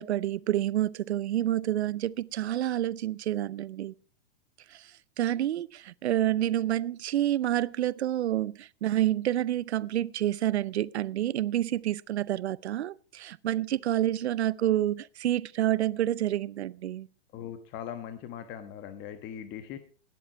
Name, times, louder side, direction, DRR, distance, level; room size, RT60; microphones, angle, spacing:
voice 1, 0.0-3.9 4.7-4.9 5.2-17.1, right 12 dB, 80° right, 0.6 m, -28 dB
voice 2, 17.3-19.8, left 9 dB, 35° left, 1.3 m, -40 dB
18.5 x 7.8 x 4.6 m
hypercardioid pair, 120°, 33 cm